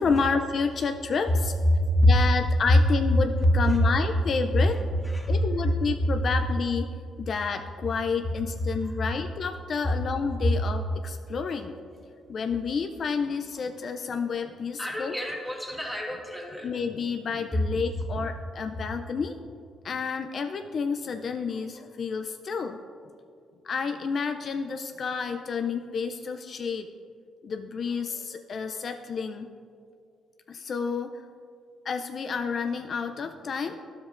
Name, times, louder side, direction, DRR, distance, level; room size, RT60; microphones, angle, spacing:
voice 1, 0.0-1.5 2.1-4.8 5.3-6.9 7.2-11.8 12.3-15.2 16.6-19.4 19.8-22.8 23.6-26.9 27.4-29.5 30.5-31.1 31.9-33.8, left 5 dB, 50° left, 6 dB, 0.3 m, -30 dB
voice 2, 1.7-2.1 3.6-3.8 4.8-4.9 5.1-5.3 14.8-16.7, equal, 5° right, 0 dB, 1.2 m, -25 dB
10.5 x 7.1 x 2.5 m, 2.3 s
cardioid pair, 90°, 0 cm